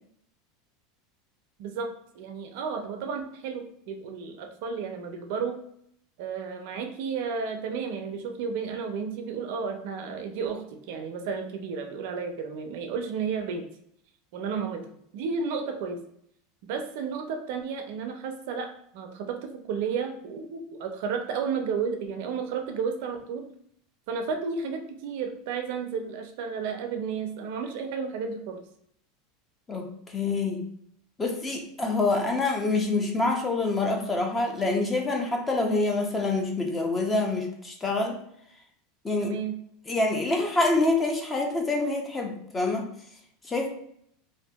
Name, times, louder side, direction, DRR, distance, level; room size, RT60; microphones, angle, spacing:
voice 1, 1.6-1.9 2.1-5.6 6.2-13.6 14.3-14.9 15.1-16.0 16.6-23.4 24.1-28.6 39.2-39.6, right 5 dB, 70° right, 5 dB, 0.4 m, -32 dB
voice 2, 29.7-30.6 31.2-38.2 39.0-39.3 39.9-42.9 43.5-43.7, left 2 dB, 20° left, 2 dB, 0.6 m, -26 dB
2.5 x 2.4 x 2.2 m, 0.69 s
hypercardioid pair, 105°, 0 cm